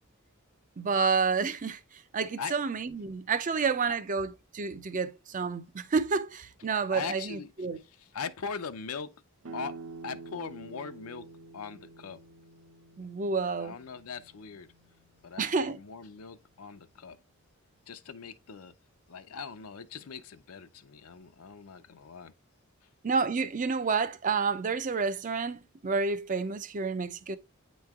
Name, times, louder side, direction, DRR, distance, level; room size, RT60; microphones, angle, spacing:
voice 1, 0.8-1.8 2.1-7.8 13.0-13.7 15.4-15.8 23.0-27.4, right 5 dB, 35° right, 0.5 m, -29 dB
voice 2, 6.9-9.1 9.5-9.8 10.0-11.3 11.5-12.2 13.6-14.7 15.2-17.2 17.9-18.7 19.1-22.3, left 5 dB, 85° left, 0.6 m, -40 dB
sound 1, 9.4-15.0, right 4 dB, 65° right, 0.8 m, -48 dB
8.9 x 3.1 x 3.5 m
head